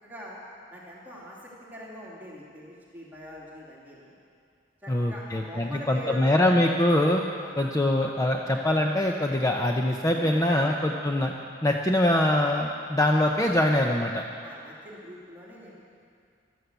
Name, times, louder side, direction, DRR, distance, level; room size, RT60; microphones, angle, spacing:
voice 1, 0.0-0.4 0.7-4.1 4.8-6.5 7.4-7.6 10.1-10.7 14.4-15.8, left 1 dB, 10° right, -6 dB, 2.8 m, -43 dB
voice 2, 4.9-7.2 7.6-11.3 11.6-14.2, left 1 dB, 20° left, 1 dB, 0.7 m, -23 dB
13.0 x 13.0 x 8.1 m, 2.3 s
head